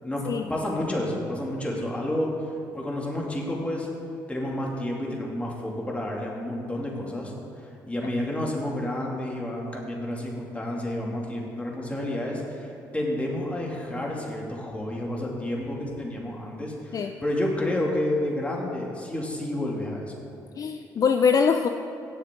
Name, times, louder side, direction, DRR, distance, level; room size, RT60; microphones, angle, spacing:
voice 1, 0.0-2.3 2.7-3.9 4.3-20.1, left 1 dB, 15° left, -2 dB, 2.8 m, -30 dB
voice 2, 20.6-21.7, left 6 dB, 45° left, 6 dB, 0.5 m, -22 dB
17.0 x 7.6 x 3.9 m, 2.7 s
supercardioid pair, 70°, 8 cm